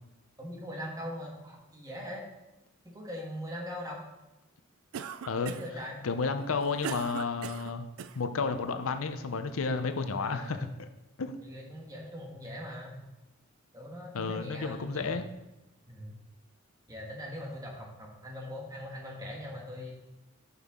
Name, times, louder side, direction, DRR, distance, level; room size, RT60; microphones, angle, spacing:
voice 1, 0.4-2.2 2.8-4.1 5.4-6.1 10.2-10.6 11.4-13.0 13.7-15.2 15.9-16.2 16.9-19.9, equal, 15° right, -1 dB, 1.5 m, -41 dB
Cough, 4.9-5.8 6.4-8.2, right 7 dB, 85° right, 0.4 m, -39 dB
voice 2, 6.0-7.9 8.1-10.9 11.2-11.3 14.1-15.3, left 4 dB, 80° left, 8 dB, 0.6 m, -32 dB
9.7 x 5.6 x 3.7 m, 0.96 s
head